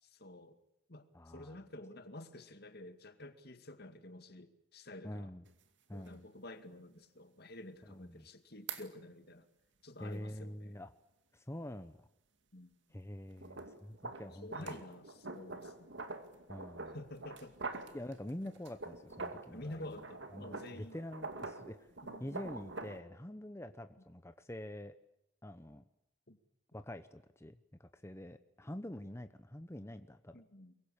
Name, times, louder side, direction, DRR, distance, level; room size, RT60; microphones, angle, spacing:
voice 1, 0.0-0.6 0.9-5.3 5.9-9.5 9.8-10.8 12.5-12.7 14.1-16.0 16.9-17.9 19.5-21.0 22.0-22.4 26.3-26.4 30.3-30.7, left 1 dB, 60° left, 9 dB, 2.2 m, -50 dB
voice 2, 1.1-1.6 5.0-5.4 5.9-6.2 7.9-8.3 10.0-10.9 11.3-12.1 12.9-14.8 16.5-17.0 17.9-19.8 20.3-21.9 22.2-25.0 25.4-25.8 26.7-30.3, left 1 dB, 15° left, 9 dB, 0.9 m, -46 dB
sound 1, 5.5-5.6 6.1-6.2 8.7-8.9 13.4-19.6 19.9-23.0, right 3 dB, 75° right, 2.4 m, -45 dB
23.5 x 23.0 x 8.7 m, 0.83 s
head